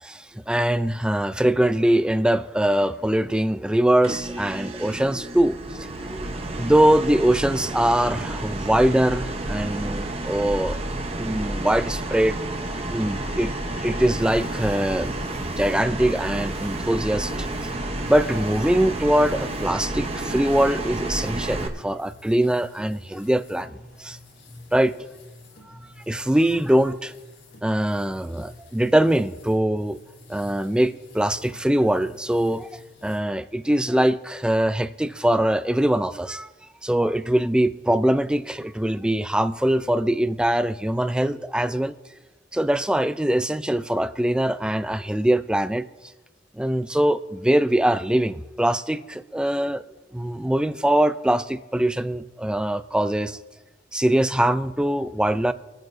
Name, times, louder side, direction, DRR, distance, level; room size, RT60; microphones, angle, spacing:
voice 1, 0.0-5.6 6.0-6.3 6.6-10.8 11.2-12.4 12.9-13.5 13.8-17.5 18.1-24.2 24.7-25.1 25.8-27.1 27.6-30.0 30.3-36.5 36.8-41.9 42.5-45.9 46.6-49.8 50.1-53.4 53.9-55.5, right 1 dB, 5° right, 13 dB, 0.3 m, -22 dB
sound 1, 4.0-21.7, right 2 dB, 35° right, 0.9 m, -30 dB
sound 2, 14.1-33.2, left 2 dB, 80° left, 3.9 m, -48 dB
27.5 x 9.2 x 2.6 m, 1.1 s
head